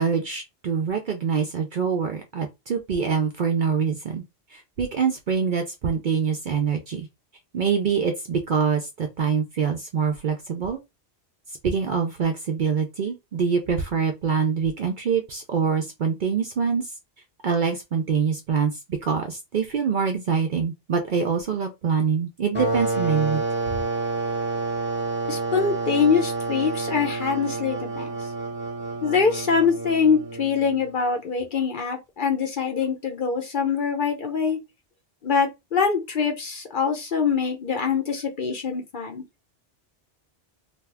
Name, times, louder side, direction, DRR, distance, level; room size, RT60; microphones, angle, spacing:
voice 1, 0.0-4.2 4.5-7.1 7.5-10.8 11.6-16.9 17.4-23.5, right 6 dB, 55° right, 0.5 m, -25 dB
sound 1, 22.5-30.9, right 3 dB, 10° right, 0.9 m, -29 dB
voice 2, 25.3-28.2 29.0-34.6 35.2-39.2, left 6 dB, 55° left, 0.7 m, -24 dB
2.7 x 2.3 x 3.3 m
omnidirectional pair, 1.2 m